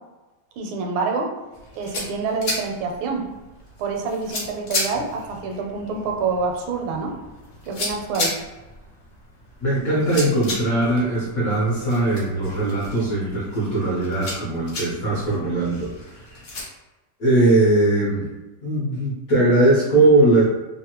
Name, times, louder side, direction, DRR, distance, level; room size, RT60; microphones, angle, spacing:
voice 1, 0.6-1.3 1.8-3.3 3.8-7.2 7.7-8.4, right 4 dB, 80° right, 2 dB, 1.4 m, -27 dB
sound 1, 1.5-16.6, left 2 dB, 75° left, 0.6 m, -34 dB
voice 2, 9.6-16.1 17.2-18.3 18.6-20.4, right 2 dB, 60° left, -7 dB, 1.0 m, -20 dB
3.3 x 2.1 x 2.8 m, 1.1 s
omnidirectional pair, 2.3 m